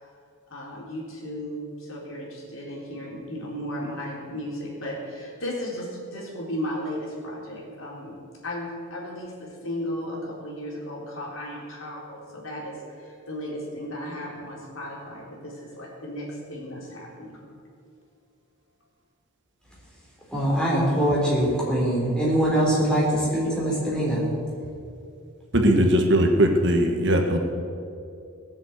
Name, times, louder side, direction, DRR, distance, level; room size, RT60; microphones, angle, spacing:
voice 1, 0.5-8.2 8.4-17.4, equal, 70° left, -3 dB, 4.0 m, -35 dB
voice 2, 20.3-24.2, right 1 dB, 5° left, -5 dB, 3.9 m, -23 dB
voice 3, 25.5-27.4, equal, 55° right, 3 dB, 1.6 m, -19 dB
18.5 x 7.5 x 8.2 m, 2.5 s
head